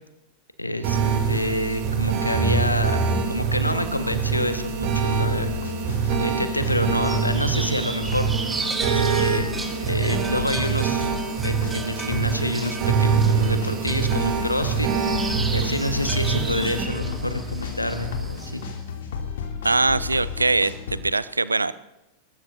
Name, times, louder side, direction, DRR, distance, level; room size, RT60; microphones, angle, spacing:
voice 1, 0.6-1.0 1.3-3.0 3.3-5.5 6.2-8.3 8.8-9.5 9.8-11.1 11.4-14.9 15.5-18.6, left 1 dB, 85° left, 8 dB, 1.5 m, -27 dB
sound 1, 0.8-16.8, right 6 dB, 45° right, 3.1 m, -25 dB
sound 2, 5.0-21.0, left 5 dB, 60° left, 2.9 m, -33 dB
sound 3, 7.0-18.7, right 3 dB, 15° right, 1.9 m, -35 dB
voice 2, 19.6-21.7, right 3 dB, 80° right, 18 dB, 0.6 m, -22 dB
22.0 x 20.5 x 2.8 m, 0.91 s
figure-of-eight pair, 90°, 0 cm